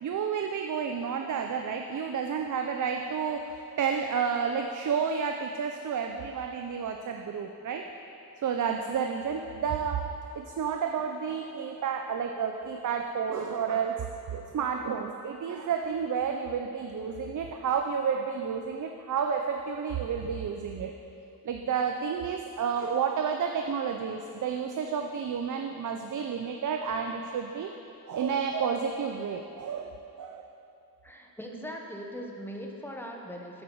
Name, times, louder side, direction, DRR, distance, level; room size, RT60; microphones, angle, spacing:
voice 1, 0.0-7.8 8.4-10.0 10.3-20.9 21.4-27.7 28.1-30.5, right 6 dB, 50° right, 4 dB, 0.5 m, -31 dB
voice 2, 31.0-33.6, equal, 5° left, 0 dB, 1.0 m, -40 dB
8.4 x 8.1 x 4.6 m, 2.7 s
wide cardioid pair, 100°, 38 cm